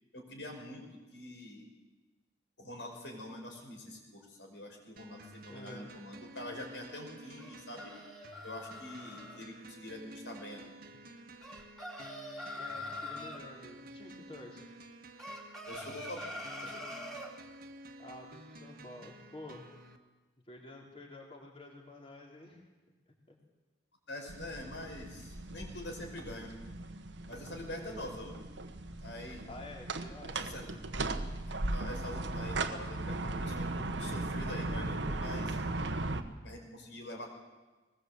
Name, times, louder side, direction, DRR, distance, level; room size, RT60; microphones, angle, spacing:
voice 1, 0.1-1.7 2.6-8.0 8.4-10.7 15.7-16.8 24.1-26.5 27.3-28.4 29.0-29.5 30.3-30.6 31.5-35.6 36.4-37.3, left 1 dB, 70° left, 2 dB, 5.2 m, -45 dB
sound 1, 5.0-20.0, right 1 dB, 50° right, 1.6 m, -52 dB
voice 2, 5.5-5.9 12.6-14.7 18.0-19.7 20.5-22.6 23.3-23.4 26.0-26.2 27.7-28.1 29.4-30.8, left 2 dB, 30° left, 0 dB, 3.7 m, -50 dB
sound 2, 7.4-9.4 11.4-13.4 15.2-17.3, left 1 dB, ahead, 3.4 m, -43 dB
sound 3, 24.3-36.2, right 2 dB, 70° right, 1.4 m, -37 dB
20.5 x 20.0 x 8.0 m, 1.2 s
head